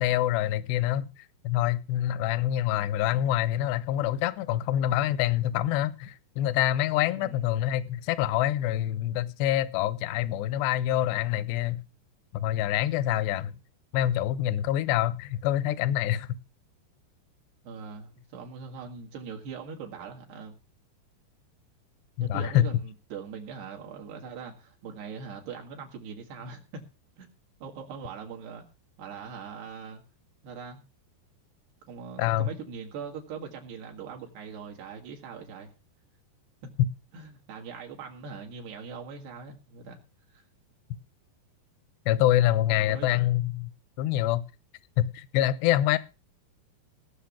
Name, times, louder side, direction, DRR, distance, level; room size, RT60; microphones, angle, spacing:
voice 1, 0.0-11.8 12.3-13.5 13.9-16.3 22.2-22.7 32.2-32.5 42.1-43.7 44.0-44.4 45.0-46.0, left 13 dB, 80° left, 2.9 m, -26 dB
voice 2, 7.1-7.5 17.6-20.6 22.2-26.8 27.2-27.3 27.6-28.6 29.0-30.0 30.4-30.8 31.9-35.7 36.6-36.7 37.1-40.0 40.3-40.4 42.9-43.3, right 5 dB, 75° right, 4.0 m, -41 dB
17.5 x 6.7 x 7.1 m
omnidirectional pair, 4.8 m